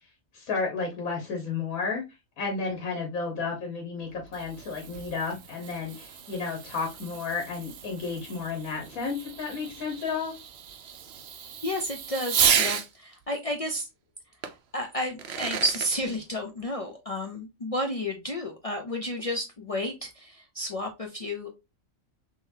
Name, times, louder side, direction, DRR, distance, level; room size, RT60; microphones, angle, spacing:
voice 1, 0.3-2.0 2.4-10.3, left 4 dB, 85° left, 1.5 m, -32 dB
Fireworks, 4.0-12.9 14.4-14.5 15.0-15.9, right 8 dB, 60° right, 0.7 m, -32 dB
voice 2, 11.6-13.9 14.7-21.5, left 1 dB, 65° left, 0.3 m, -31 dB
3.8 x 3.0 x 2.6 m
omnidirectional pair, 1.4 m